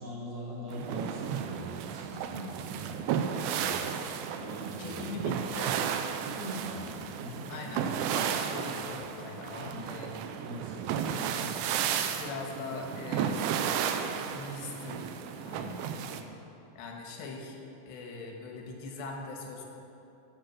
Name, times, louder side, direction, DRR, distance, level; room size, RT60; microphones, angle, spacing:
voice 1, 0.0-3.0 3.5-3.8 4.3-5.1 6.2-7.5 9.5-9.9 10.4-11.0 11.4-11.5 15.9-16.3, right 1 dB, 40° right, -9 dB, 4.5 m, -41 dB
sound 1, 0.7-16.2, right 8 dB, 85° right, 2.8 m, -33 dB
voice 2, 4.8-5.8 7.5-10.2 12.2-13.4 14.3-16.0 16.8-17.6 17.9-19.7, left 3 dB, 75° left, 1 dB, 3.5 m, -41 dB
14.0 x 7.9 x 7.5 m, 2.8 s
omnidirectional pair, 5.0 m